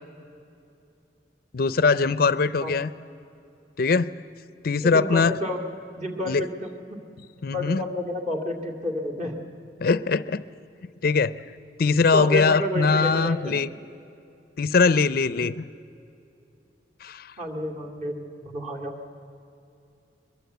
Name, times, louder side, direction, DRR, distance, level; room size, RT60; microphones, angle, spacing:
voice 1, 1.5-2.9 3.8-4.1 4.6-5.3 6.3-6.4 7.4-7.8 9.8-10.4 11.0-11.3 11.8-13.7 14.6-15.6 17.0-17.3, left 4 dB, 55° left, 16 dB, 0.5 m, -21 dB
voice 2, 4.8-5.6 6.0-7.0 7.5-9.4 12.1-13.5 17.4-18.9, equal, 40° right, 2 dB, 2.5 m, -30 dB
22.5 x 22.0 x 8.1 m, 2.7 s
head